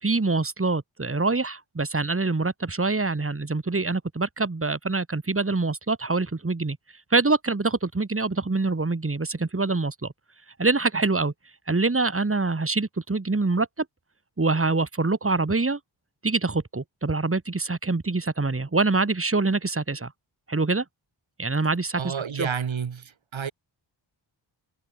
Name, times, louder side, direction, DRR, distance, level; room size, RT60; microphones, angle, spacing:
voice 1, 0.0-6.8 7.1-10.1 10.6-11.3 11.7-13.9 14.4-15.8 16.2-20.1 20.5-20.8 21.4-22.5, right 3 dB, 30° right, 3.6 m, -25 dB
voice 2, 22.0-23.5, right 7 dB, 85° right, 4.0 m, -30 dB
wide cardioid pair, 85°, 46 cm